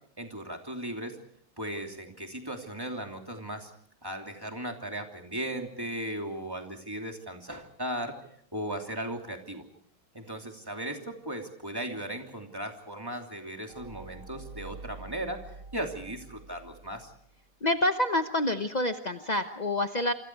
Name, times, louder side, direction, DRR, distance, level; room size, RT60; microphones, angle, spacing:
voice 1, 0.2-1.2 1.6-3.7 4.0-8.1 8.5-9.6 10.1-17.1, right 1 dB, 10° right, 2 dB, 3.0 m, -37 dB
sound 1, 13.7-17.4, right 3 dB, 90° right, 2.8 m, -47 dB
voice 2, 17.6-20.1, left 1 dB, 50° left, 7 dB, 0.5 m, -27 dB
27.5 x 26.0 x 4.8 m, 0.64 s
omnidirectional pair, 2.3 m